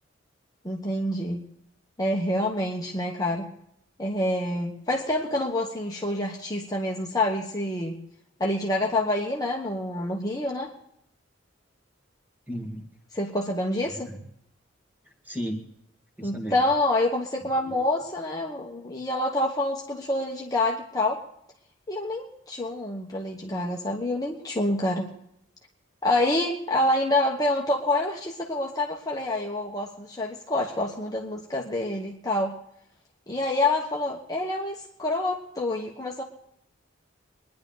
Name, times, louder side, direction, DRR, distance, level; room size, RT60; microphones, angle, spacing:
voice 1, 0.6-1.4 2.0-3.5 4.0-8.0 8.4-10.7 13.1-14.1 16.2-21.2 21.9-25.1 26.0-32.5 33.3-36.2, left 1 dB, 20° left, -1 dB, 1.2 m, -27 dB
voice 2, 12.5-12.9 13.9-14.2 15.3-15.6 16.2-16.6, equal, 10° right, 2 dB, 1.9 m, -34 dB
24.0 x 10.5 x 3.9 m, 0.73 s
head